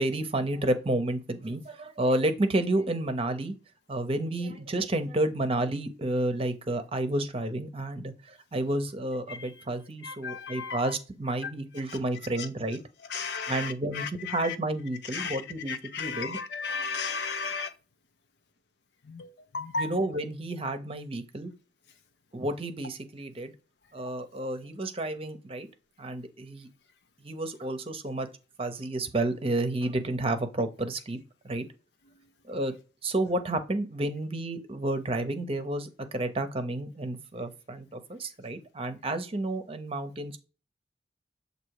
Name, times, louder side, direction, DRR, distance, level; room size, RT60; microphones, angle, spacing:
voice 1, 0.0-3.5 3.9-12.8 13.5-16.4 19.8-21.5 22.3-23.5 23.9-25.7 26.0-26.7 27.2-28.3 28.6-31.2 31.4-31.7 32.5-32.7 33.0-40.4, right 1 dB, 30° right, 0.7 m, -30 dB
voice 2, 10.0-10.9 11.9-12.0 13.1-14.6 15.1-15.4 15.7-17.7 19.1-19.9, left 5 dB, 65° left, 0.7 m, -34 dB
7.4 x 2.7 x 4.7 m
head